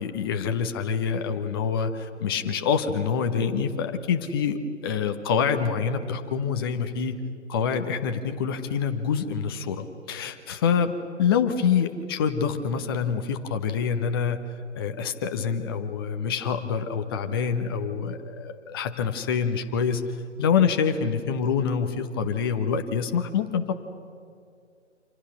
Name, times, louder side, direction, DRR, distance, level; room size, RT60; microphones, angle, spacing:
voice 1, 0.0-7.2 7.5-10.9 11.2-14.4 14.8-20.0 20.4-23.7, left 6 dB, 20° left, 7 dB, 1.1 m, -26 dB
29.0 x 27.0 x 6.3 m, 2.3 s
figure-of-eight pair, 145°, 36 cm